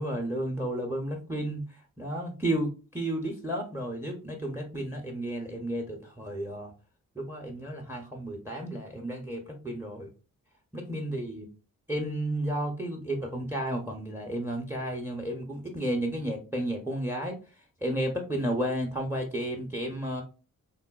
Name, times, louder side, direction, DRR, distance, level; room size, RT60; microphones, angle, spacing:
voice 1, 0.0-1.6 2.0-6.7 7.2-10.1 10.7-11.5 11.9-17.4 17.8-20.2, right 1 dB, 5° right, 3 dB, 0.5 m, -32 dB
3.7 x 2.1 x 2.2 m, 0.34 s
cardioid pair, 75°, 36 cm